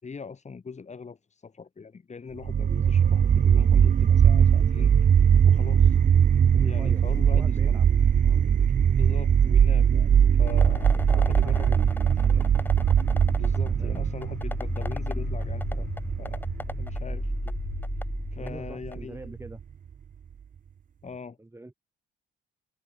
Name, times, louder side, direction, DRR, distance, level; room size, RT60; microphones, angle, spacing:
voice 1, 0.0-4.9 5.4-6.0 6.6-7.8 8.9-11.9 12.2-12.4 13.4-15.9 16.2-17.6 18.3-19.3 21.0-21.4, left 5 dB, 35° left, 6.9 m, -41 dB
sound 1, 2.4-19.5, right 8 dB, 40° right, 0.7 m, -21 dB
voice 2, 6.5-7.0 7.3-7.9 8.2-8.4 10.1-10.3 10.9-11.9 12.2-12.5 13.6-13.9 18.3-19.6 21.4-21.7, right 2 dB, 15° right, 4.8 m, -43 dB
sound 2, 10.4-19.1, left 2 dB, 10° left, 0.7 m, -34 dB
cardioid pair, 90°, 20 cm